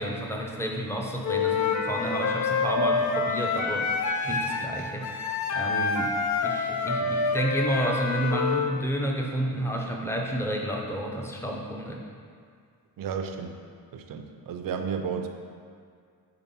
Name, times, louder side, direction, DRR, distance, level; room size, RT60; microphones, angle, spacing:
voice 1, 0.0-5.2 5.5-6.1 6.4-12.0, equal, 5° left, 0 dB, 0.7 m, -30 dB
Wind instrument woodwind instrument, 1.2-8.7, left 4 dB, 50° left, 0.6 m, -27 dB
voice 2, 13.0-13.6 13.9-15.3, right 6 dB, 60° right, 6 dB, 0.6 m, -32 dB
5.8 x 4.0 x 5.5 m, 2.2 s
cardioid pair, 120°, 37 cm